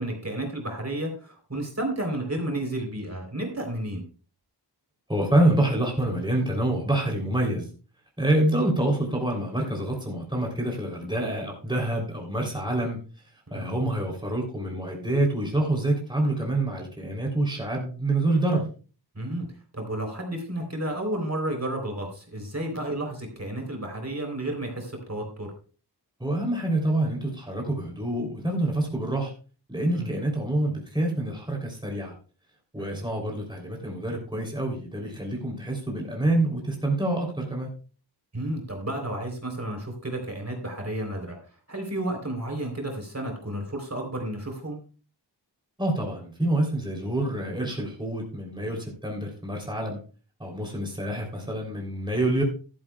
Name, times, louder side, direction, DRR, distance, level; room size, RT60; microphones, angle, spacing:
voice 1, 0.0-4.0 13.5-13.7 19.2-19.5 19.7-25.5 30.0-30.1 32.8-33.0 38.3-41.4 41.7-44.8, right 1 dB, 35° right, 2 dB, 3.5 m, -32 dB
voice 2, 5.1-7.7 8.2-13.0 13.5-18.7 26.2-29.3 29.7-32.1 32.7-37.7 45.8-50.0 50.4-52.4, right 1 dB, 10° right, 0 dB, 3.2 m, -26 dB
14.0 x 12.5 x 2.3 m, 0.37 s
wide cardioid pair, 70°, 43 cm